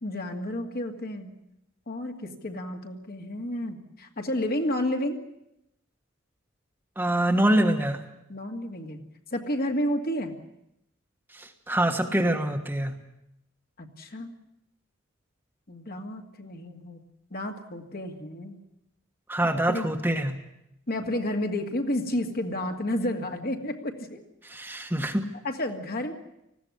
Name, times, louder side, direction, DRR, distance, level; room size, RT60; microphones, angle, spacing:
voice 1, 0.0-1.3 1.9-5.2 8.3-9.0 9.3-10.3 13.8-14.3 15.7-17.0 17.3-18.6 19.4-19.9 20.9-24.2 25.4-26.1, left 1 dB, 50° left, 3 dB, 2.3 m, -31 dB
voice 2, 7.0-8.0 11.3-12.9 19.3-20.4 24.4-25.2, right 1 dB, 10° right, 4 dB, 1.3 m, -25 dB
19.5 x 15.5 x 9.9 m, 0.84 s
head